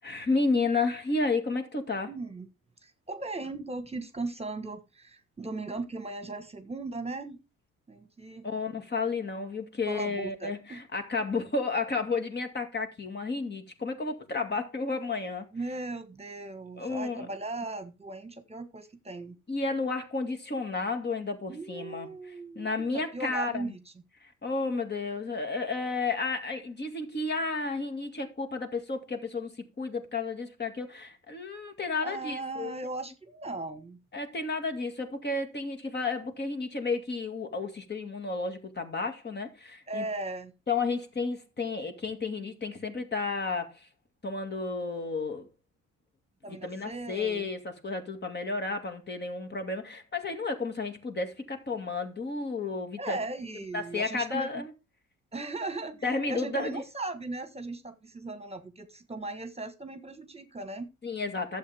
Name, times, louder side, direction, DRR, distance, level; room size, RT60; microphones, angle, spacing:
voice 1, 0.0-2.1 8.4-15.5 16.8-17.3 19.5-22.1 22.6-23.7 24.2-32.7 34.1-40.0 40.7-43.7 44.2-45.5 46.6-53.2 53.7-54.7 56.0-56.8 61.0-61.6, left 3 dB, 35° left, 2.2 m, -32 dB
voice 2, 2.0-2.5 2.8-7.4 7.9-8.5 9.9-10.8 15.5-19.4 21.5-23.9 32.0-34.0 39.9-40.5 46.4-47.5 53.0-54.6 55.3-60.9, right 2 dB, 20° right, 1.4 m, -38 dB
12.0 x 7.7 x 3.5 m
cardioid pair, 90°, 30 cm